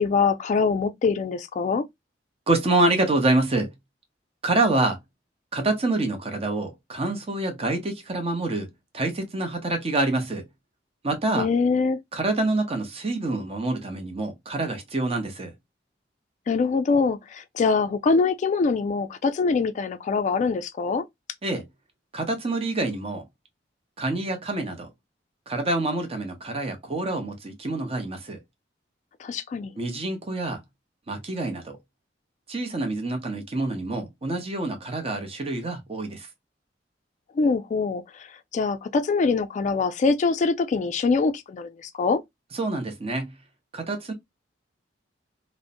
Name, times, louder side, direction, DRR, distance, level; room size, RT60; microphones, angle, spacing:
voice 1, 0.0-1.9 11.4-12.0 16.5-21.0 29.2-29.7 37.4-38.0 38.5-42.2, left 4 dB, 40° left, 0.3 m, -23 dB
voice 2, 2.5-3.7 4.4-5.0 5.5-10.4 11.0-11.5 12.1-15.5 21.4-21.7 22.1-23.2 24.0-24.9 25.5-28.4 29.8-30.6 31.1-31.8 32.5-36.3 42.5-43.3 43.7-44.1, right 2 dB, 35° right, 0.7 m, -26 dB
2.5 x 2.0 x 2.5 m
head